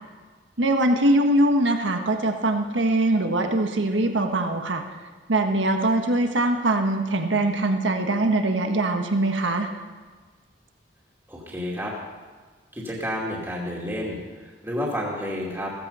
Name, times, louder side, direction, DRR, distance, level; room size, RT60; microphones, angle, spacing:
voice 1, 0.6-4.8 5.3-9.7, right 1 dB, 85° right, 5 dB, 1.4 m, -22 dB
voice 2, 11.3-11.9 12.7-15.7, equal, 15° right, -4 dB, 2.5 m, -30 dB
16.5 x 15.0 x 5.6 m, 1.4 s
head